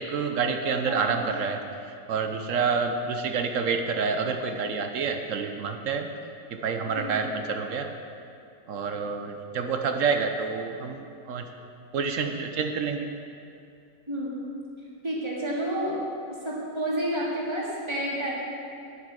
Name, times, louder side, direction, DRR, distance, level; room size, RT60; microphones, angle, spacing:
voice 1, 0.0-1.6 2.1-6.1 6.5-7.9 8.7-11.5 11.9-13.1, right 5 dB, 60° right, 6 dB, 0.8 m, -28 dB
voice 2, 0.8-1.2 6.9-7.2 14.1-14.4 15.0-16.0 16.3-18.3, right 1 dB, 15° right, -5 dB, 2.2 m, -30 dB
9.8 x 8.3 x 6.1 m, 2.5 s
omnidirectional pair, 1.9 m